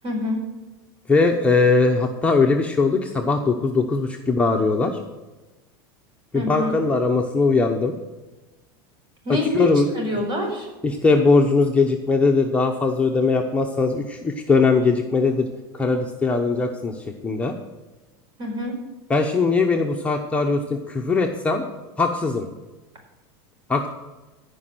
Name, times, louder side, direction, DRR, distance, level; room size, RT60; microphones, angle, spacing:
voice 1, 0.0-0.4 6.3-6.7 9.2-10.7 18.4-18.8, left 1 dB, 40° right, 1 dB, 4.8 m, -26 dB
voice 2, 1.1-5.0 6.3-8.0 9.3-9.9 10.8-15.5 15.7-17.0 17.2-17.6 19.1-21.6 22.0-22.5 23.7-23.9, left 3 dB, 10° left, 1 dB, 0.9 m, -20 dB
14.5 x 5.4 x 7.7 m, 1.1 s
supercardioid pair, 135°, 12 cm